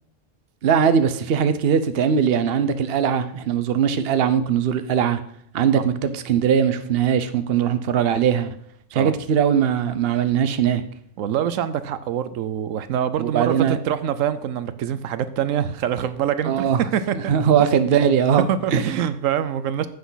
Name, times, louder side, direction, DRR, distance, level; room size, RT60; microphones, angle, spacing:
voice 1, 0.6-5.2 5.5-8.5 8.9-10.8 13.2-13.8 16.4-16.8 17.1-18.9, right 8 dB, 55° right, 11 dB, 0.9 m, -20 dB
voice 2, 11.2-17.1 18.5-19.9, right 9 dB, 85° right, 13 dB, 1.0 m, -25 dB
10.0 x 8.2 x 4.0 m, 0.67 s
omnidirectional pair, 1.3 m